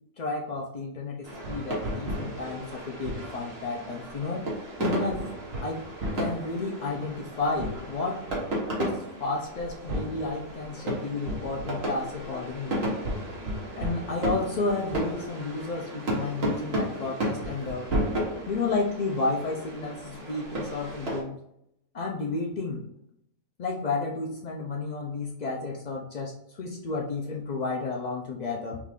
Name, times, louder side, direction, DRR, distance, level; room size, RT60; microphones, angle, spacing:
voice 1, 0.2-4.5 4.8-5.2 5.6-5.8 6.1-8.2 8.8-12.8 13.8-17.9 18.5-21.4 21.9-22.8 23.6-28.8, left 3 dB, 80° left, -1 dB, 0.3 m, -32 dB
sound 1, 1.2-21.2, right 1 dB, 45° right, 1.4 m, -33 dB
5.8 x 2.4 x 3.5 m, 0.76 s
omnidirectional pair, 1.5 m